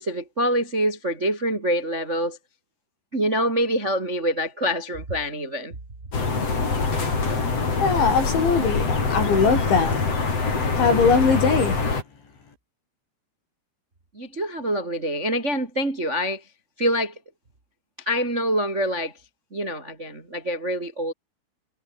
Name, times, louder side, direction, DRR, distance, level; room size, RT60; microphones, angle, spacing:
voice 1, 0.0-2.4 3.1-5.7 14.1-16.4 16.8-17.1 18.0-19.1 19.5-21.1, equal, 20° right, 2.4 m, -25 dB
sound 1, 6.1-12.0, left 4 dB, 30° left, 5.5 m, -24 dB
voice 2, 7.8-10.1 10.7-11.8, left 5 dB, 60° left, 9.2 m, -21 dB
omnidirectional pair, 6.0 m